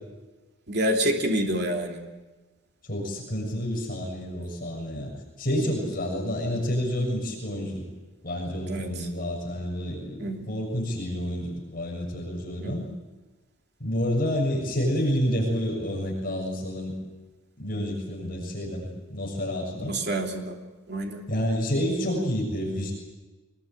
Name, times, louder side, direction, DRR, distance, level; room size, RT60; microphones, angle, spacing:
voice 1, 0.7-2.0 8.7-8.9 10.2-10.5 12.6-12.9 19.9-20.6 20.9-21.2, right 1 dB, 50° right, 2 dB, 3.2 m, -27 dB
voice 2, 2.8-5.1 5.4-7.8 8.2-12.9 13.8-17.0 17.6-20.0 21.3-22.9, equal, 40° left, -1 dB, 7.0 m, -29 dB
24.5 x 21.5 x 9.0 m, 1.2 s
head